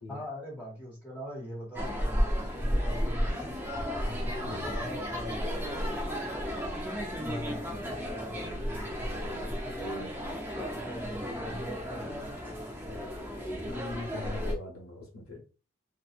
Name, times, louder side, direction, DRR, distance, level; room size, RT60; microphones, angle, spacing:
voice 1, 0.1-3.5 4.6-6.0 7.1-10.1 10.6-13.8, equal, 5° left, -8 dB, 0.9 m, -42 dB
sound 1, 1.7-14.5, equal, 10° right, 0.4 m, -33 dB
voice 2, 4.0-4.8 13.7-15.4, left 3 dB, 85° left, -2 dB, 0.9 m, -41 dB
2.8 x 2.2 x 2.4 m, 0.34 s
head